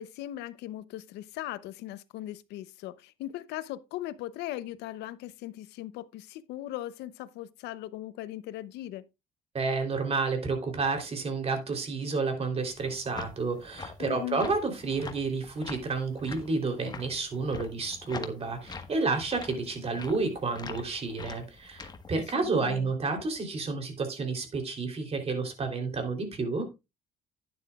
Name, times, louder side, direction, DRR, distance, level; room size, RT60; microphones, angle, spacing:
voice 1, 0.0-9.0 14.0-14.4 22.3-22.9, left 14 dB, 85° left, 0.8 m, -39 dB
voice 2, 9.5-26.7, right 4 dB, 35° right, 3.4 m, -30 dB
sound 1, 12.6-22.2, left 4 dB, 25° left, 1.4 m, -44 dB
11.5 x 9.6 x 2.4 m
cardioid pair, 110°, 17 cm